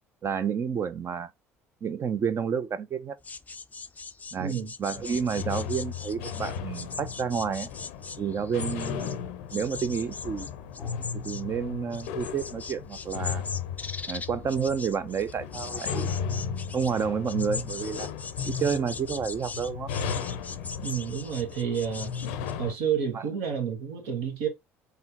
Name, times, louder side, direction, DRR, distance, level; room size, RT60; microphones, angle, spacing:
voice 1, 0.2-1.3 1.8-3.2 4.3-7.7 8.2-9.2 9.5-10.5 11.1-13.4 14.1-16.2 16.7-18.1 18.4-19.9 23.1-23.2, right 7 dB, 40° right, 0.6 m, -30 dB
sound 1, 3.2-9.2 9.5-22.5, left 4 dB, 20° left, 0.4 m, -40 dB
voice 2, 4.4-4.7 20.8-22.1 22.6-24.5, right 8 dB, 70° right, 1.5 m, -30 dB
sound 2, 4.9-22.7, left 7 dB, 70° left, 0.5 m, -36 dB
4.2 x 3.7 x 2.9 m
hypercardioid pair, 60°, 7 cm